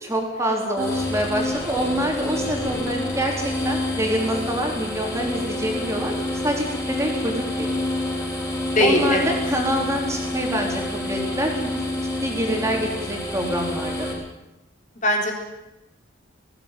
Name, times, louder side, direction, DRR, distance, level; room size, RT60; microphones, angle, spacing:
voice 1, 0.0-3.3 3.6-6.1 6.4-7.8 8.8-11.7 12.2-14.1, equal, 15° right, 0 dB, 3.8 m, -26 dB
sound 1, 0.8-14.1, left 1 dB, 15° left, 6.1 m, -28 dB
voice 2, 8.8-9.2 15.0-15.3, left 1 dB, 35° left, 1 dB, 3.8 m, -19 dB
19.5 x 15.5 x 9.1 m, 0.95 s
head